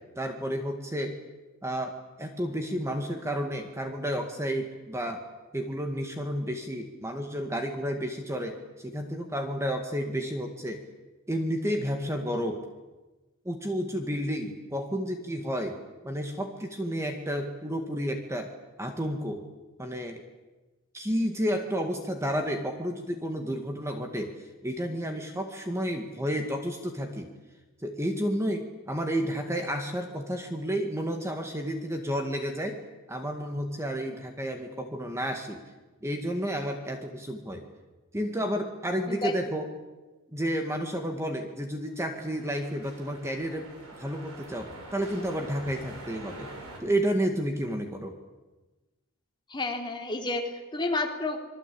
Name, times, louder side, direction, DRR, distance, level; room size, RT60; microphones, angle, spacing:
voice 1, 0.2-1.2 1.6-5.2 5.5-10.8 11.3-12.6 13.5-15.8 16.0-18.5 18.8-19.4 19.8-20.2 20.9-27.3 27.8-32.8 33.1-35.6 36.0-37.6 38.1-39.7 40.3-43.7 44.0-46.5 46.8-48.1, equal, 15° right, 4 dB, 2.0 m, -31 dB
sound 1, 41.9-46.8, right 1 dB, 85° right, 7.5 m, -45 dB
voice 2, 49.5-51.4, left 2 dB, 20° left, 2 dB, 3.1 m, -30 dB
26.5 x 22.5 x 8.6 m, 1.2 s
head